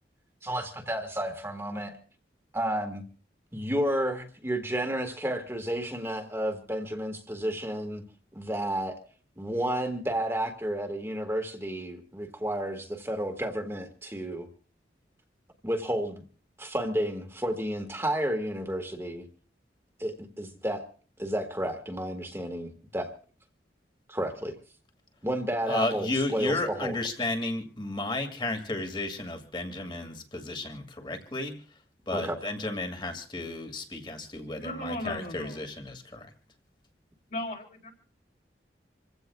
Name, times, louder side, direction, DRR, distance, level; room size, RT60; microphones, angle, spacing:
voice 1, 0.4-1.9 2.5-3.0 3.5-8.0 8.3-9.0 9.4-14.5 15.6-16.2 16.6-19.2 20.0-20.9 21.2-23.1 24.1-24.6 25.2-27.0 32.1-32.4, right 1 dB, 15° right, 4 dB, 1.8 m, -31 dB
voice 2, 25.7-31.6 32.1-36.3, left 2 dB, 25° left, 6 dB, 2.3 m, -33 dB
voice 3, 34.6-35.6 37.3-37.9, left 1 dB, 50° left, 3 dB, 3.8 m, -36 dB
27.5 x 16.0 x 2.4 m, 0.41 s
head